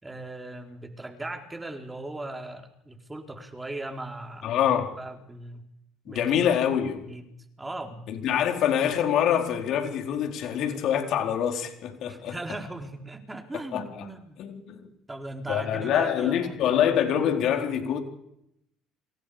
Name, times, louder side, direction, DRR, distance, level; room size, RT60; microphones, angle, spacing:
voice 1, 0.0-4.6 4.9-5.7 6.1-6.4 7.0-8.1 12.1-14.4 15.1-16.6, right 2 dB, 15° right, 4.2 m, -38 dB
voice 2, 4.4-4.9 6.1-7.0 8.1-12.4 13.7-14.1 14.4-14.9 15.5-18.0, left 9 dB, 60° left, 4.2 m, -25 dB
29.0 x 26.5 x 5.2 m
hypercardioid pair, 65°, 0 cm